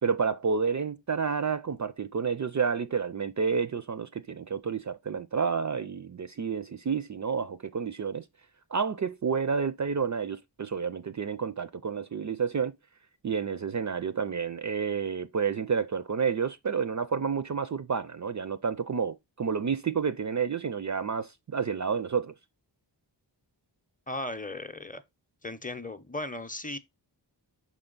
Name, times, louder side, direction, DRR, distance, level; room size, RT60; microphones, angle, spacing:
voice 1, 0.0-8.3 8.7-12.7 13.2-22.3, right 6 dB, 40° right, 0.4 m, -30 dB
voice 2, 24.1-25.0 25.4-26.8, left 2 dB, 20° left, 0.6 m, -36 dB
6.4 x 4.4 x 3.8 m
wide cardioid pair, 85°, 45 cm